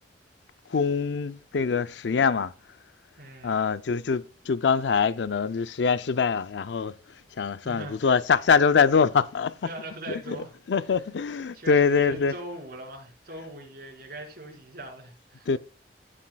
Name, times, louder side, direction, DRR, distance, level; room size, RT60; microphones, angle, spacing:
voice 1, 0.7-2.5 3.4-6.9 7.4-9.5 10.1-10.4 10.7-12.3 15.5-15.6, left 5 dB, 80° left, 0.5 m, -24 dB
voice 2, 3.2-3.6 7.6-8.0 9.6-10.5 11.5-15.5, right 1 dB, 55° right, 4.7 m, -40 dB
15.5 x 7.4 x 2.3 m
head